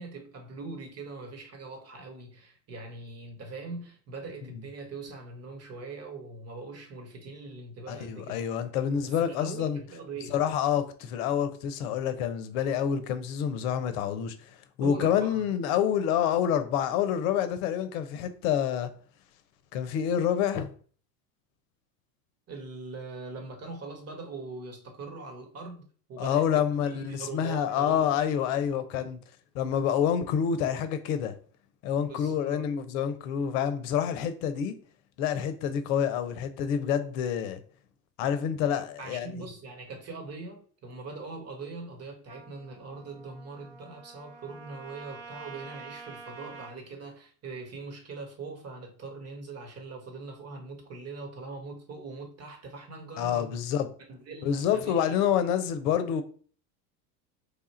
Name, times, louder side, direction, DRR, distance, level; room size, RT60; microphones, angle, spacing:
voice 1, 0.0-8.4 9.0-10.4 14.8-15.5 22.5-28.0 28.7-28.8 32.0-32.7 39.0-53.5 54.1-55.1, right 3 dB, 35° right, 1.4 m, -42 dB
voice 2, 7.9-9.8 10.3-18.9 19.7-20.7 26.2-29.2 29.5-31.3 31.8-34.7 35.2-37.6 38.2-39.3 53.2-53.9 54.4-56.2, left 8 dB, 65° left, 0.8 m, -27 dB
Trumpet, 42.3-46.8, right 4 dB, 50° right, 0.9 m, -47 dB
3.3 x 2.4 x 4.3 m
hypercardioid pair, 95°, 45 cm